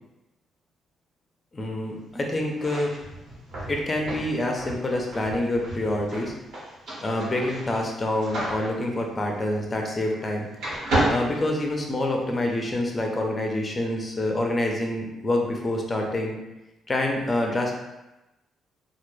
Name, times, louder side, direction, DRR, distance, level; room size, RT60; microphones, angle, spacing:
voice 1, 1.5-2.9 3.7-6.3 7.0-10.5 11.1-16.4 16.9-17.7, left 1 dB, 30° left, 1 dB, 0.5 m, -27 dB
sound 1, 2.5-10.3 10.6-12.2, right 1 dB, 70° right, 0.9 m, -32 dB
2.1 x 2.0 x 3.1 m, 0.98 s
cardioid pair, 90°, 0 cm